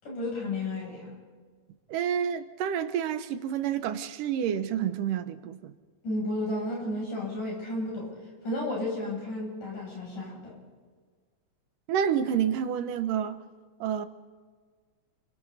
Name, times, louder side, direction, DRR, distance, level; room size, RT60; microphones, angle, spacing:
voice 1, 0.0-1.1 6.0-8.1 8.4-10.5, left 1 dB, 75° left, 9.7 m, -32 dB
voice 2, 1.9-5.7 11.9-13.4 13.8-14.1, right 9 dB, 85° right, 2.6 m, -29 dB
30.0 x 23.5 x 4.2 m
omnidirectional pair, 3.7 m